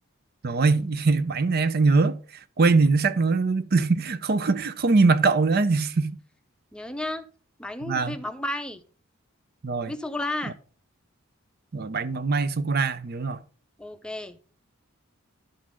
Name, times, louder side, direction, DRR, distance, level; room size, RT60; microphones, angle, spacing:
voice 1, 0.4-2.2 2.6-6.2 7.9-8.2 9.6-9.9 11.7-13.4, right 3 dB, 45° right, 0.5 m, -22 dB
voice 2, 6.7-7.3 7.6-8.8 9.9-10.5 13.8-14.4, left 1 dB, 5° left, 0.6 m, -32 dB
11.5 x 3.9 x 6.1 m
head